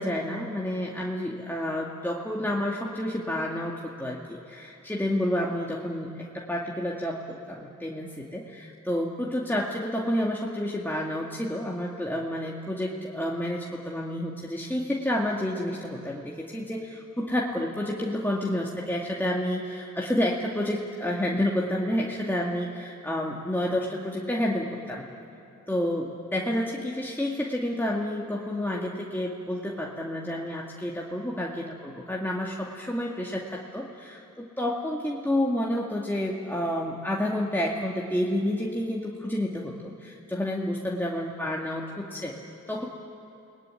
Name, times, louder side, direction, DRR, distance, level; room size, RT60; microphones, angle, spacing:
voice 1, 0.0-6.1 6.3-25.1 25.7-42.4 42.7-42.9, left 1 dB, 5° left, -3 dB, 2.2 m, -29 dB
29.0 x 19.5 x 9.9 m, 2.7 s
wide cardioid pair, 65°, 31 cm